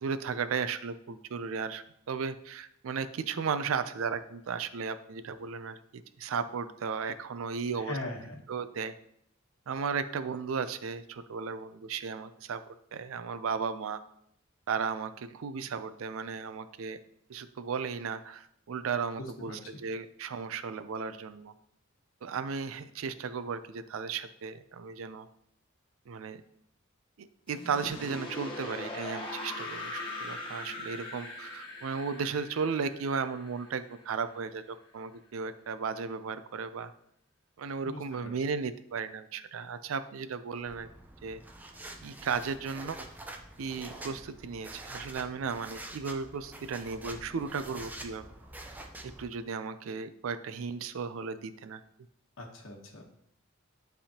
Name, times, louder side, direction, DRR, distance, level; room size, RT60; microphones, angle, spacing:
voice 1, 0.0-8.0 8.5-8.9 9.7-14.0 14.7-17.0 17.3-21.5 22.2-25.3 26.1-26.4 27.2-36.9 37.6-40.9 41.2-41.4 42.0-43.1 43.6-48.2 49.0-51.8, right 5 dB, 85° right, 12 dB, 0.4 m, -35 dB
voice 2, 7.7-8.4 19.2-19.8 37.8-38.3 52.4-53.0, left 2 dB, 75° left, 2 dB, 1.1 m, -41 dB
sound 1, 27.5-34.4, left 2 dB, 25° left, 1.0 m, -41 dB
sound 2, 40.7-49.3, right 1 dB, 10° right, 0.5 m, -46 dB
10.0 x 3.5 x 2.8 m, 0.72 s
head